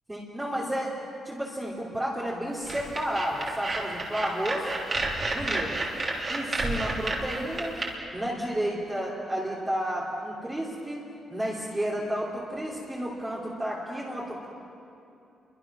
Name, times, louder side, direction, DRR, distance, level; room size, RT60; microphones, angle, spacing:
voice 1, 0.1-0.9 1.2-4.7 5.3-5.8 6.3-7.8 8.1-14.5, equal, 10° right, -6 dB, 2.9 m, -31 dB
sound 1, 2.6-7.9, right 2 dB, 30° right, 3.3 m, -30 dB
30.0 x 23.5 x 6.1 m, 2.7 s
wide cardioid pair, 180°, 0 cm